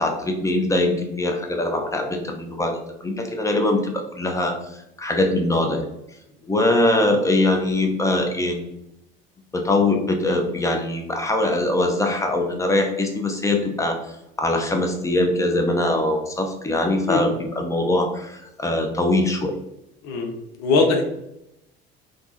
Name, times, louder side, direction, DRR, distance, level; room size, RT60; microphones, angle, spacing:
voice 1, 0.0-5.8 6.5-8.7 9.5-14.0 14.4-19.6, left 2 dB, 10° left, 3 dB, 0.6 m, -22 dB
voice 2, 20.6-21.0, left 3 dB, 60° left, 4 dB, 0.6 m, -20 dB
3.4 x 2.0 x 2.9 m, 0.83 s
figure-of-eight pair, 55°, 30 cm